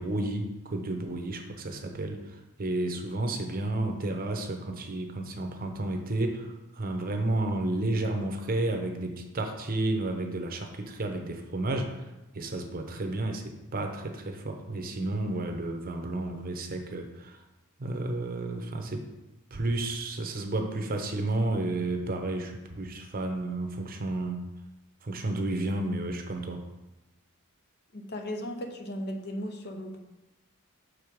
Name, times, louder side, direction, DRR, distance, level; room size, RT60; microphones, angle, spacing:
voice 1, 0.0-12.1 12.3-17.4 17.8-19.1 19.5-24.5 25.0-26.6, right 2 dB, 40° right, 4 dB, 0.8 m, -31 dB
voice 2, 27.9-30.0, equal, 50° left, 4 dB, 0.8 m, -36 dB
6.4 x 4.7 x 5.1 m, 1.0 s
head